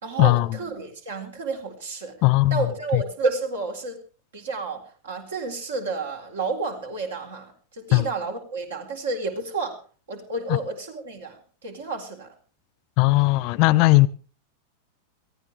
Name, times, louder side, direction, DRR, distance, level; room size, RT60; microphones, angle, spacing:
voice 1, 0.0-2.2 2.5-4.0 4.3-9.8 10.1-12.3, right 3 dB, 65° right, 3.9 m, -30 dB
voice 2, 2.2-2.6 7.9-8.0 13.0-14.1, left 20 dB, 45° left, 0.8 m, -17 dB
22.0 x 15.0 x 3.5 m
figure-of-eight pair, 90°, 0 cm